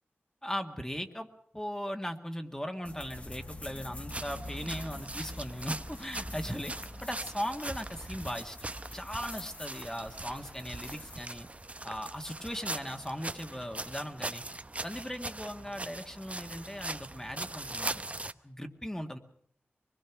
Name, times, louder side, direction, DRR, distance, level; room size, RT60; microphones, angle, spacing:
voice 1, 0.4-1.3 1.5-6.7 7.0-8.6 8.9-11.5 11.8-14.4 14.8-18.1 18.4-19.2, equal, 15° left, 5 dB, 1.9 m, -38 dB
sound 1, 2.9-11.2, left 1 dB, 30° left, 1.5 m, -45 dB
sound 2, 4.1-18.3, right 2 dB, 30° right, 0.8 m, -41 dB
23.5 x 21.0 x 6.1 m, 0.67 s
cardioid pair, 45°, 4 cm